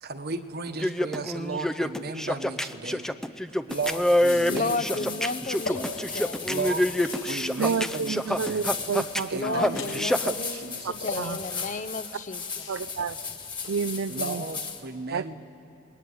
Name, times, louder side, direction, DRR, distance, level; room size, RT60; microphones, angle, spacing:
voice 1, 0.0-3.1 3.7-5.5 6.4-7.0 7.2-8.7 9.3-11.2 14.1-15.3, right 3 dB, 50° right, 8 dB, 1.3 m, -35 dB
sound 1, 0.7-10.3, left 1 dB, 5° left, 0.6 m, -26 dB
sound 2, 3.4-3.5 4.1-4.7 5.3-5.8 6.4-8.9 9.3-10.2 10.6-11.7 12.0-13.7, left 3 dB, 75° left, 6.7 m, -41 dB
sound 3, 3.7-14.8, left 5 dB, 25° left, 2.3 m, -37 dB
voice 2, 4.5-6.5 9.3-12.6, left 3 dB, 40° left, 12 dB, 0.8 m, -33 dB
voice 3, 7.6-9.8 10.8-11.4 12.7-13.2 13.7-14.4 15.1-15.3, right 5 dB, 75° right, 14 dB, 0.5 m, -30 dB
28.0 x 21.5 x 9.5 m, 3.0 s
head